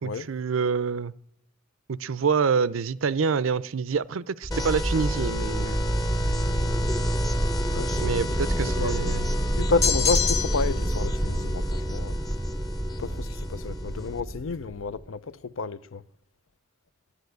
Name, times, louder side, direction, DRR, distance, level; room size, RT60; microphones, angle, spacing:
voice 1, 0.0-1.1 1.9-5.8 8.0-9.3, right 5 dB, 85° right, 0.5 m, -26 dB
sound 1, 4.4-15.0, right 1 dB, 5° right, 0.5 m, -28 dB
sound 2, 4.5-14.2, equal, 20° left, 0.8 m, -32 dB
voice 2, 7.7-8.1 8.8-8.9 9.6-12.2 13.0-16.0, left 4 dB, 80° left, 0.6 m, -31 dB
sound 3, 9.8-10.8, left 7 dB, 55° left, 1.1 m, -25 dB
12.0 x 11.0 x 7.9 m
head